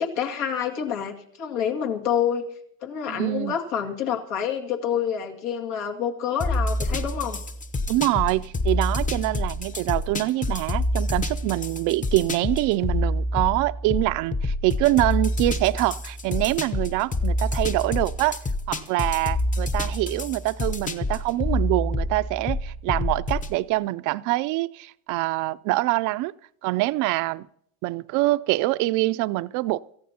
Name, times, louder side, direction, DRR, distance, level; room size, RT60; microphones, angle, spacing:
voice 1, 0.0-2.5 2.8-7.4, left 8 dB, 75° left, 2.3 m, -27 dB
voice 2, 3.1-3.5 7.9-18.4 18.7-26.3 26.6-27.5 27.8-29.8, right 18 dB, 50° right, 0.5 m, -25 dB
sound 1, 6.4-23.6, left 1 dB, 20° left, 0.9 m, -27 dB
26.5 x 14.5 x 2.9 m
supercardioid pair, 110°, 40 cm